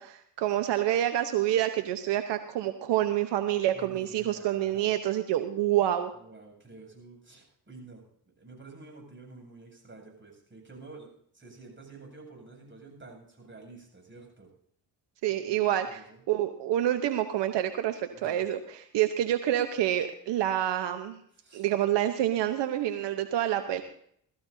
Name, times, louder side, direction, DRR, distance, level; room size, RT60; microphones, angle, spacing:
voice 1, 0.0-6.1 15.2-21.2 21.5-23.8, right 12 dB, 80° right, 8 dB, 1.0 m, -27 dB
voice 2, 3.7-4.9 6.1-8.0 8.4-11.1 11.3-14.5 15.3-16.2 18.1-18.4 21.3-21.7, right 3 dB, 25° right, 2 dB, 7.9 m, -50 dB
21.0 x 14.5 x 2.7 m, 0.65 s
cardioid pair, 70°, 41 cm